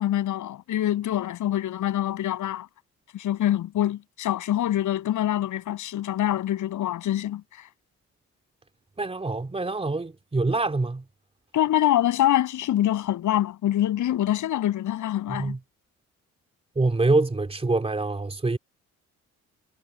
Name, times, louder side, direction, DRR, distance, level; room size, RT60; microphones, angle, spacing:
voice 1, 0.0-2.7 3.1-7.4 11.5-15.5, left 12 dB, 80° left, 6.7 m, -25 dB
voice 2, 9.0-11.0 15.3-15.6 16.7-18.6, right 3 dB, 20° right, 2.9 m, -25 dB
cardioid pair, 90°, 30 cm